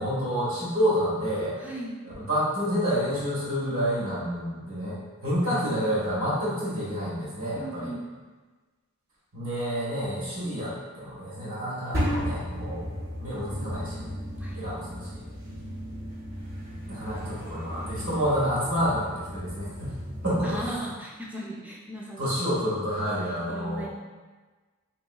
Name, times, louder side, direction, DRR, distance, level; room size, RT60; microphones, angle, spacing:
voice 1, 0.0-1.5 2.0-7.9 9.3-12.9 13.2-14.1 14.5-15.2 16.9-19.9 20.2-20.9 22.2-23.9, equal, 80° right, -8 dB, 1.3 m, -29 dB
voice 2, 1.6-2.0 7.6-8.0 14.4-14.6 20.4-22.2 23.5-23.9, right 1 dB, 5° right, -4 dB, 0.4 m, -37 dB
sound 1, 11.9-20.7, equal, 50° right, 0.7 m, -34 dB
3.1 x 2.8 x 2.3 m, 1.3 s
head